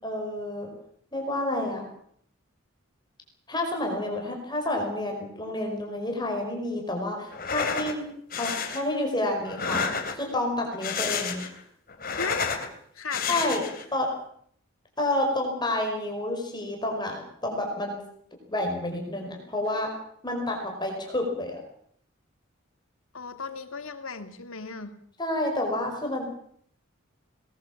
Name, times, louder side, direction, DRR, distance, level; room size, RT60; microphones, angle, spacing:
voice 1, 0.0-0.7 1.1-1.8 3.5-8.0 8.4-9.8 10.1-11.4 13.3-13.6 13.9-14.1 15.0-18.0 18.5-19.9 20.2-21.6 25.2-26.2, left 1 dB, 20° left, 1 dB, 5.0 m, -29 dB
sound 1, 7.3-7.9 8.3-8.8 9.4-10.3 10.7-11.6 11.9-12.7 13.1-13.8, left 5 dB, 45° left, 3.3 m, -30 dB
voice 2, 12.1-12.5 12.9-13.6 23.1-24.9, left 4 dB, 85° left, 8 dB, 2.4 m, -35 dB
22.0 x 19.5 x 7.3 m, 0.66 s
head